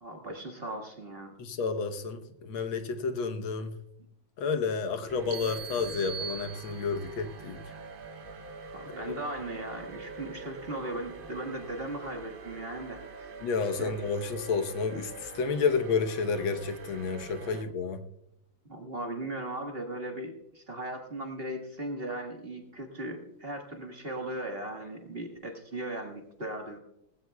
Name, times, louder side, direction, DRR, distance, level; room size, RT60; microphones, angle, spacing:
voice 1, 0.0-1.3 7.7-7.8 8.7-13.3 13.8-14.0 18.7-26.8, right 1 dB, 30° right, 3 dB, 1.6 m, -38 dB
voice 2, 1.4-3.7 4.4-7.6 8.9-9.2 13.4-18.0, left 5 dB, 75° left, 7 dB, 1.8 m, -31 dB
sound 1, 5.1-17.6, right 4 dB, 50° right, 0.6 m, -45 dB
sound 2, 5.3-7.2, right 8 dB, 65° right, 1.6 m, -41 dB
19.0 x 16.0 x 2.3 m, 0.81 s
omnidirectional pair, 2.2 m